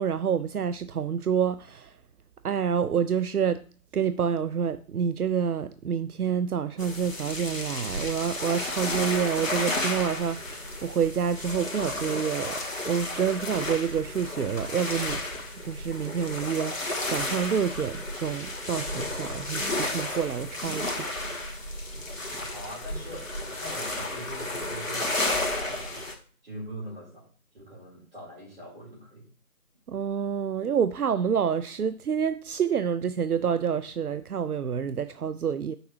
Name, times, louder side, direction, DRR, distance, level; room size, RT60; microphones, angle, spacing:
voice 1, 0.0-2.0 2.4-3.6 3.9-12.6 12.9-15.2 15.6-21.1 29.9-35.8, right 7 dB, 80° right, 0.5 m, -28 dB
sound 1, 6.8-26.1, left 2 dB, 60° left, 1.4 m, -32 dB
voice 2, 22.5-26.1 26.4-27.3 27.5-29.3, right 1 dB, 40° right, 4.0 m, -42 dB
8.2 x 6.4 x 3.1 m
figure-of-eight pair, 165°, 44 cm